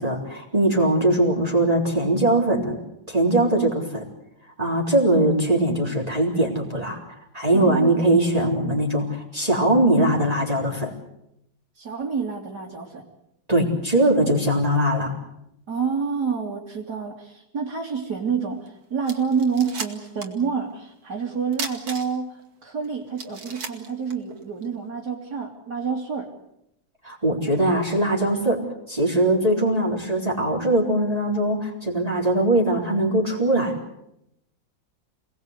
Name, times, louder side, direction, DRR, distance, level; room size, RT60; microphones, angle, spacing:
voice 1, 0.0-2.8 3.1-4.0 4.6-7.0 7.3-10.9 13.5-15.1 27.0-33.8, right 1 dB, 20° right, -1 dB, 3.9 m, -21 dB
voice 2, 7.5-8.0 11.8-13.0 15.7-26.3, right 6 dB, 55° right, -2 dB, 3.4 m, -28 dB
sound 1, 18.7-18.8 19.0-20.4 20.7-20.8 21.5-22.4 22.8-22.9 23.2-24.7, right 5 dB, 90° right, 3.1 m, -35 dB
27.5 x 19.5 x 8.1 m, 0.81 s
omnidirectional pair, 2.1 m